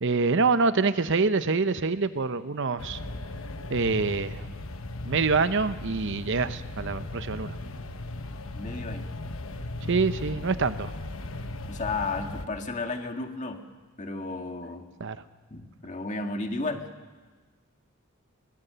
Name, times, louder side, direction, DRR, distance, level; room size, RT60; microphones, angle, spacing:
voice 1, 0.0-3.0 3.7-4.5 5.0-7.6 9.9-10.9 15.0-15.2, right 4 dB, 60° right, 12 dB, 0.8 m, -25 dB
sound 1, 2.8-12.5, left 2 dB, 70° left, 1.1 m, -37 dB
voice 2, 8.5-9.1 11.7-13.6 14.0-14.9 15.5-16.9, left 3 dB, 35° left, 4 dB, 1.8 m, -33 dB
22.5 x 20.5 x 6.9 m, 1.3 s
head